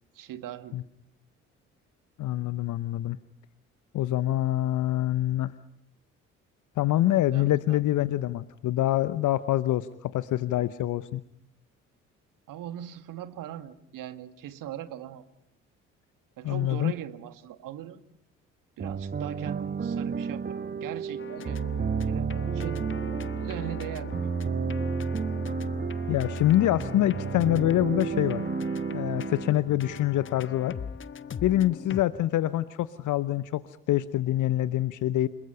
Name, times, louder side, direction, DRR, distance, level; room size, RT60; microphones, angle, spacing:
voice 1, 0.1-0.8 7.3-7.8 12.5-15.2 16.4-18.0 18.8-22.8 23.3-24.5, right 11 dB, 60° right, 11 dB, 1.8 m, -40 dB
voice 2, 2.2-3.2 3.9-5.5 6.8-11.2 16.4-16.9 26.1-28.4 28.9-30.7 31.4-33.6 33.9-35.3, left 14 dB, 55° left, 15 dB, 0.9 m, -25 dB
sound 1, 18.8-30.5, right 6 dB, 25° right, 1.0 m, -32 dB
sound 2, 21.2-32.0, left 6 dB, 35° left, 1.0 m, -40 dB
29.5 x 21.0 x 5.6 m, 0.73 s
figure-of-eight pair, 45°, 37 cm